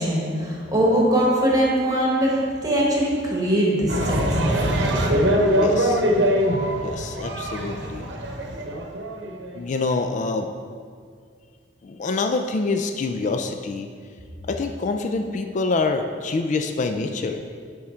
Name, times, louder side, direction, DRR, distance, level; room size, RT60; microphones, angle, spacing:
voice 1, 0.0-4.7, equal, 20° right, -4 dB, 1.3 m, -21 dB
sound 1, 3.9-9.5, equal, 75° right, 0.9 m, -22 dB
voice 2, 5.5-6.0 6.8-8.0 9.5-10.5 11.8-13.9 14.5-17.5, left 3 dB, 40° left, 6 dB, 0.3 m, -26 dB
10.0 x 3.7 x 4.4 m, 2.1 s
head